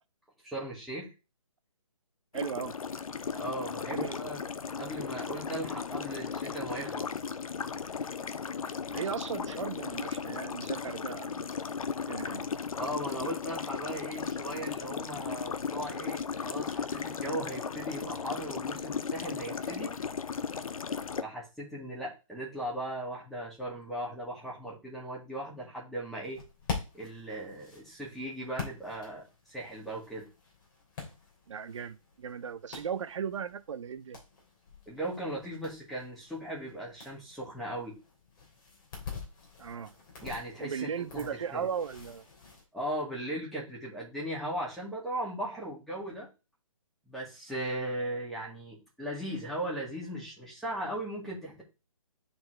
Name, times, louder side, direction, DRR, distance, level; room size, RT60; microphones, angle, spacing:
voice 1, 0.4-1.1 3.3-4.5 4.8-7.1 12.8-19.9 21.2-26.4 26.9-30.3 34.9-38.0 40.2-41.7 42.7-46.3 47.1-51.6, right 1 dB, ahead, 2.2 m, -38 dB
sound 1, 2.3-21.2, left 6 dB, 75° left, 0.6 m, -36 dB
voice 2, 2.3-2.7 3.9-4.2 8.9-11.5 12.1-12.5 31.5-34.2 39.6-39.9 40.6-42.2, right 7 dB, 60° right, 0.7 m, -37 dB
sound 2, 26.2-42.6, left 5 dB, 35° left, 2.9 m, -45 dB
10.5 x 4.3 x 3.3 m
hypercardioid pair, 150°, 18 cm